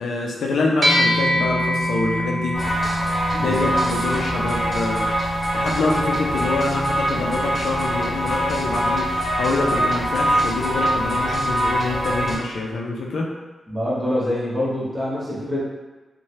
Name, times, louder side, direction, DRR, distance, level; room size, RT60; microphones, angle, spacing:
voice 1, 0.0-2.6 3.3-13.3, left 3 dB, 85° left, -1 dB, 0.4 m, -25 dB
sound 1, 0.8-10.4, equal, 50° right, 0.4 m, -27 dB
sound 2, 2.5-12.4, right 1 dB, 30° left, 1.3 m, -24 dB
voice 2, 3.4-3.7 13.7-15.6, left 1 dB, 15° right, -8 dB, 1.0 m, -25 dB
3.1 x 2.1 x 2.7 m, 1.2 s
wide cardioid pair, 120°, 0 cm